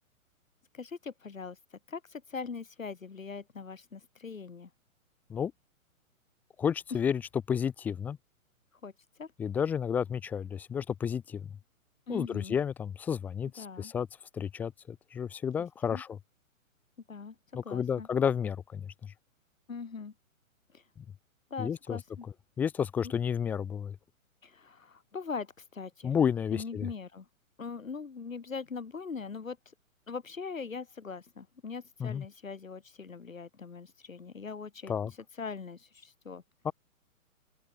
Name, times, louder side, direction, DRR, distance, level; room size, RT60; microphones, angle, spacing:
voice 1, 0.7-1.6 1.9-4.7 8.8-8.9 9.2-9.3 12.1-12.6 13.6-13.9 15.9-16.0 17.1-18.1 19.7-20.1 21.5-22.3 23.0-23.1 24.4-26.1 26.5-27.2 27.6-29.6 30.1-34.9 35.4-36.4, left 5 dB, 70° left, 2.9 m, -41 dB
voice 2, 6.6-7.2 7.5-8.2 9.4-11.4 12.1-14.1 14.3-16.2 17.5-19.1 21.0-21.1 21.6-22.0 22.6-24.0 26.0-26.9 32.0-32.3 34.9-35.1 36.6-36.7, left 7 dB, 5° left, 0.6 m, -31 dB
open air
figure-of-eight pair, 125°, 42 cm